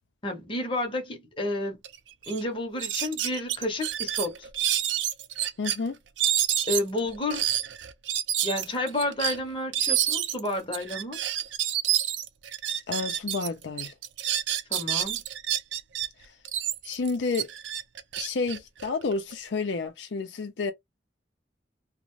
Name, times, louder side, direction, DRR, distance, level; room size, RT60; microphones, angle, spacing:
voice 1, 0.2-1.8 2.3-4.5 6.7-7.5 8.4-11.2 14.7-15.2, left 1 dB, 30° left, 0.7 m, -30 dB
sound 1, 1.8-2.0 2.2-2.4 2.8-5.8 6.2-13.5 13.8-16.1 16.5-19.3, right 11 dB, 85° right, 0.4 m, -28 dB
voice 2, 5.6-6.0 12.9-13.9 16.8-17.5 18.2-20.7, left 4 dB, 75° left, 0.5 m, -30 dB
2.4 x 2.1 x 3.0 m
head